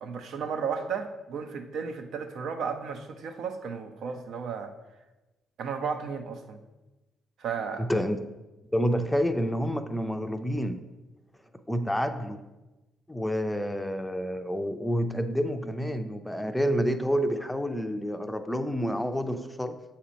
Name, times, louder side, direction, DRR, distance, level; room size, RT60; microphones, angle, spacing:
voice 1, 0.0-4.7 5.6-6.6 7.4-7.9, right 6 dB, 70° right, 6 dB, 0.6 m, -34 dB
voice 2, 7.8-8.3 8.7-10.9 11.7-12.4 13.1-19.8, equal, 5° left, 8 dB, 0.4 m, -28 dB
7.3 x 2.9 x 5.0 m, 1.1 s
cardioid pair, 90°, 0 cm